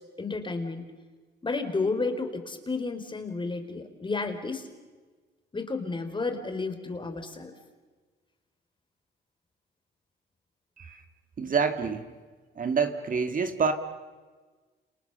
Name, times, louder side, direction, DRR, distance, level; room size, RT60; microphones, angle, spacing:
voice 1, 0.2-0.8 1.4-4.7 5.5-7.5, left 3 dB, 25° left, 7 dB, 4.1 m, -31 dB
voice 2, 11.4-12.0 12.6-13.7, right 5 dB, 45° right, 7 dB, 2.1 m, -27 dB
30.0 x 28.5 x 6.9 m, 1.4 s
cardioid pair, 90°, 20 cm